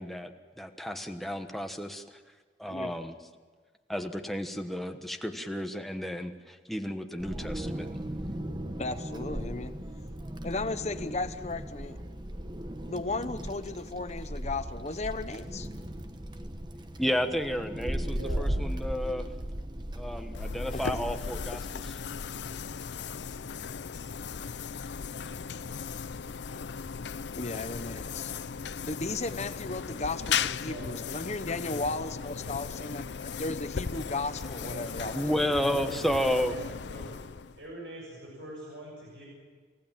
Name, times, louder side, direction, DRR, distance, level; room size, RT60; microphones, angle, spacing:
voice 1, 0.0-2.2 2.6-3.2 3.9-7.9 17.0-19.3 19.9-22.0 35.1-36.5, equal, ahead, 5 dB, 1.2 m, -32 dB
Wind, 7.2-21.4, right 1 dB, 25° right, 1.1 m, -37 dB
voice 2, 8.8-9.8 10.4-12.0 12.9-15.7 20.7-21.2 27.4-28.3 28.8-35.3, left 3 dB, 40° left, 10 dB, 1.0 m, -35 dB
voice 3, 18.1-18.5 29.9-31.3 34.4-37.1 37.6-39.2, right 1 dB, 80° right, -3 dB, 7.1 m, -44 dB
sound 1, 20.3-37.7, left 6 dB, 70° left, 0.6 m, -37 dB
29.0 x 15.5 x 7.5 m, 1.5 s
head